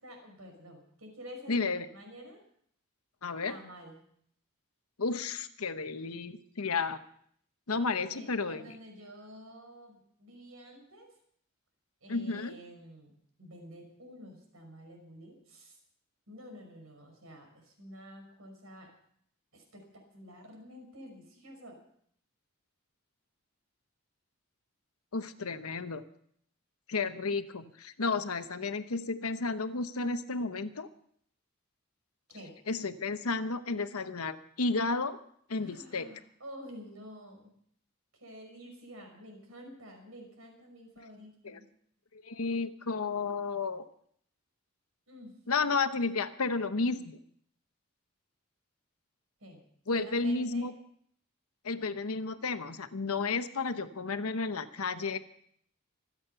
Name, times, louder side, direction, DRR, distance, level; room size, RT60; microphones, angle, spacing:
voice 1, 0.0-2.4 3.5-4.0 7.7-11.1 12.0-13.1 13.4-15.8 16.3-18.9 19.5-21.8 32.3-32.5 35.6-37.5 38.1-41.7 45.1-45.3 49.4-49.6 49.9-50.7, equal, 75° right, 3 dB, 5.7 m, -49 dB
voice 2, 1.5-1.9 3.2-3.6 5.0-7.0 7.7-8.8 12.1-12.6 25.1-26.0 26.9-30.9 32.7-35.2 35.5-36.1 41.4-41.6 42.2-43.9 45.5-47.2 49.9-50.7 51.6-55.2, left 4 dB, 90° left, 10 dB, 1.0 m, -32 dB
25.5 x 8.7 x 5.7 m, 0.66 s
head